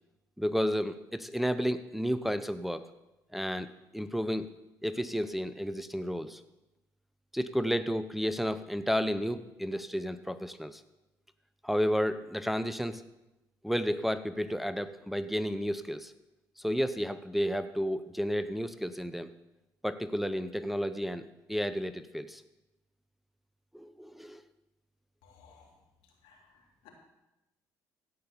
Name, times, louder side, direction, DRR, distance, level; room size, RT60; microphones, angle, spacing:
voice 1, 0.4-2.9 3.3-3.7 3.9-4.5 4.8-6.4 7.3-10.8 11.6-13.0 13.6-16.1 16.6-19.3 19.8-22.4 23.7-24.4, equal, ahead, 11 dB, 0.7 m, -32 dB
voice 2, 25.2-25.7 26.2-26.9, left 6 dB, 80° left, 0 dB, 3.0 m, -59 dB
16.5 x 5.8 x 7.0 m, 0.98 s
hypercardioid pair, 60°, 9 cm